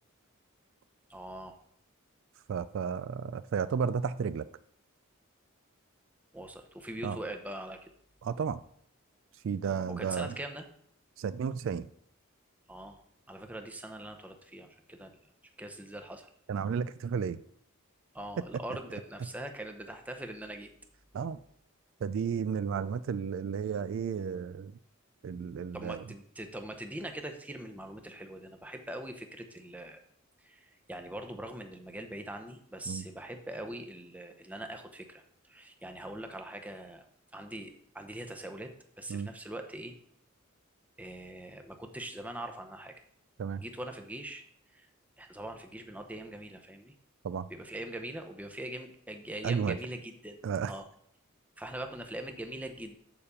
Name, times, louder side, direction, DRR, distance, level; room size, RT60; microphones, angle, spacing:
voice 1, 1.1-1.5 6.3-7.9 10.0-10.7 12.7-13.0 13.3-15.1 15.6-16.3 18.1-20.7 25.7-30.0 30.4-37.0 37.3-38.7 39.0-39.9 41.0-42.9 43.6-44.4 44.7-44.9 45.2-46.9 47.5-50.4 50.7-50.9 51.6-53.0, right 1 dB, 5° right, 5 dB, 0.7 m, -42 dB
voice 2, 2.5-4.5 7.0-7.2 8.2-8.6 9.4-10.4 11.2-11.9 16.5-17.4 21.1-21.4 22.0-24.7 25.2-26.0 32.9-33.0 39.1-39.3 43.4-43.6 47.2-47.5 49.4-49.8 50.4-50.7, right 6 dB, 60° right, 14 dB, 0.3 m, -32 dB
7.1 x 5.0 x 6.9 m, 0.67 s
head